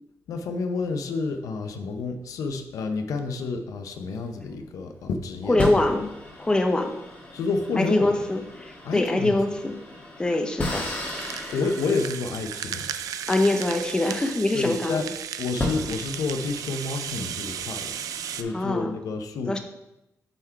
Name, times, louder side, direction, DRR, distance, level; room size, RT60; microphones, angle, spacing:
voice 1, 0.3-5.6 7.3-8.1 8.8-9.4 11.5-12.9 14.5-15.1 15.4-19.6, left 4 dB, 75° left, 7 dB, 0.7 m, -29 dB
sound 1, 4.1-4.9 5.6-14.7 15.2-15.3 15.6-18.6, left 2 dB, 30° left, 1.7 m, -36 dB
voice 2, 5.5-6.1 6.4-6.9 7.8-9.8 10.2-10.9 13.3-15.1 18.5-19.0 19.5-19.6, left 2 dB, 15° left, 5 dB, 0.6 m, -24 dB
Rattle (instrument), 10.7-18.4, right 9 dB, 80° right, 0.4 m, -35 dB
8.1 x 3.7 x 4.5 m, 0.91 s
cardioid pair, 130°, 6 cm